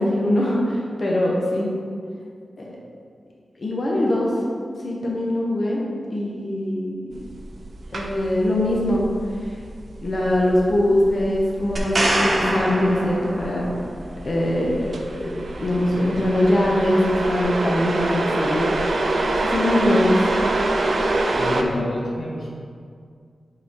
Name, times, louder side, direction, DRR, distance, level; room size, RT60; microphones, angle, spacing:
voice 1, 0.0-1.7 2.6-2.8 3.6-4.3 4.8-5.8 6.1-7.2 7.9-9.1 10.0-13.7 14.2-14.9 15.2-18.7 19.4-20.2, left 1 dB, 50° left, -3 dB, 1.0 m, -22 dB
sound 1, 7.1-21.6, right 2 dB, 75° right, 0.5 m, -26 dB
sound 2, 11.8-13.7 17.4-17.5, right 1 dB, 50° right, 0.9 m, -24 dB
voice 2, 21.2-22.5, left 1 dB, 80° left, -4 dB, 1.0 m, -28 dB
4.8 x 4.3 x 4.8 m, 2.1 s
wide cardioid pair, 85°, 0 cm